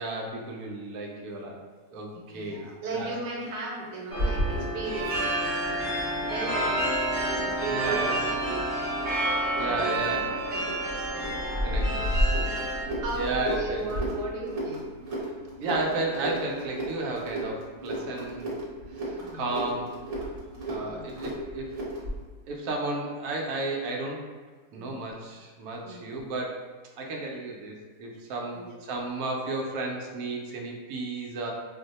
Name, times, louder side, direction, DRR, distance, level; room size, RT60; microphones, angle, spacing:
voice 1, 0.0-1.6 1.9-3.1 7.7-8.2 9.6-10.3 11.6-12.2 13.1-13.9 15.6-18.5 18.9-19.9 20.7-21.8 22.5-24.3 24.7-26.6 27.0-31.5, right 2 dB, 70° right, 0 dB, 1.0 m, -33 dB
voice 2, 2.3-6.7 7.2-9.0 9.6-14.9 19.2-19.5 20.6-21.2 24.7-25.1 25.8-26.1 28.5-28.8, right 2 dB, 85° right, -1 dB, 1.2 m, -37 dB
sound 1, 4.1-12.8, right 1 dB, 20° right, 0.6 m, -29 dB
sound 2, 4.2-22.2, equal, 40° right, 1.0 m, -34 dB
2.7 x 2.1 x 3.9 m, 1.4 s
omnidirectional pair, 1.7 m